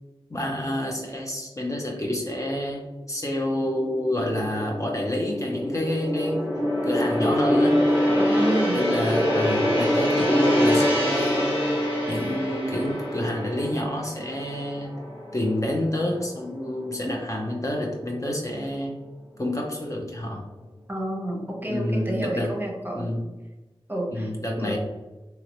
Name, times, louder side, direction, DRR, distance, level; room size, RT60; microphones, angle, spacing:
voice 1, 0.3-6.5 6.8-7.8 8.7-11.6 12.1-14.9 15.3-19.0 19.4-20.4 21.7-22.6 22.9-23.2 24.1-24.8, left 1 dB, 30° left, 0 dB, 0.6 m, -28 dB
Gong, 3.7-16.1 16.4-16.7, equal, 85° left, 1.4 m, -25 dB
voice 2, 8.2-8.8 20.9-23.1 23.9-24.3 24.6-24.8, right 1 dB, 20° right, -1 dB, 0.9 m, -30 dB
2.9 x 2.8 x 2.9 m, 1.1 s
wide cardioid pair, 55°, 10 cm